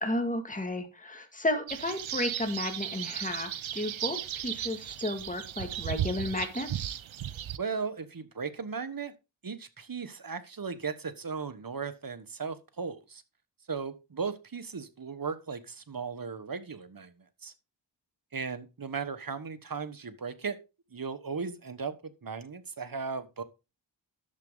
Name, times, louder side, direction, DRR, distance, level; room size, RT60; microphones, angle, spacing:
voice 1, 0.0-4.2 4.4-6.9, left 1 dB, 15° left, 2.2 m, -33 dB
sound 1, 1.7-7.6, right 11 dB, 75° right, 0.7 m, -36 dB
voice 2, 7.6-9.1 9.4-13.2 13.7-17.5 18.3-20.6 20.9-23.4, right 5 dB, 45° right, 1.4 m, -37 dB
11.5 x 7.5 x 3.9 m
cardioid pair, 55°, 47 cm